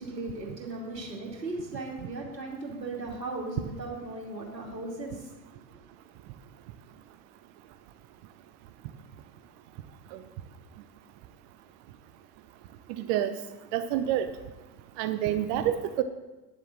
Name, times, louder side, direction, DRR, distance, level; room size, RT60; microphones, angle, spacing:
voice 1, 0.0-5.3, right 2 dB, 85° right, -1 dB, 2.7 m, -37 dB
voice 2, 12.9-13.3 13.7-14.3 15.0-16.0, right 11 dB, 45° right, 10 dB, 0.9 m, -27 dB
10.5 x 7.6 x 6.4 m, 1.1 s
figure-of-eight pair, 80°, 49 cm